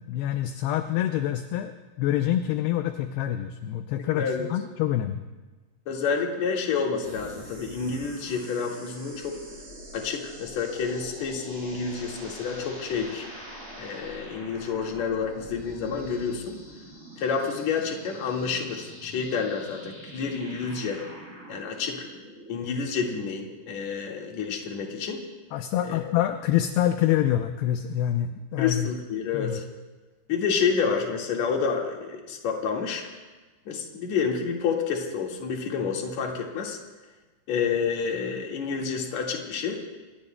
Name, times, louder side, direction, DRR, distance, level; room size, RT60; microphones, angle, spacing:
voice 1, 0.0-5.2 25.5-28.9 29.3-29.6, left 12 dB, 80° left, 7 dB, 2.4 m, -26 dB
voice 2, 4.1-4.5 5.9-9.3 9.9-13.2 13.8-16.5 17.2-21.0 21.5-22.1 22.5-25.2 25.8-26.0 28.6-29.6 30.3-33.1 33.7-36.8 37.5-39.8, left 6 dB, 50° left, 0 dB, 2.6 m, -29 dB
sound 1, 7.0-23.8, right 1 dB, 30° right, 7.9 m, -45 dB
27.0 x 22.0 x 2.2 m, 1.2 s
omnidirectional pair, 5.1 m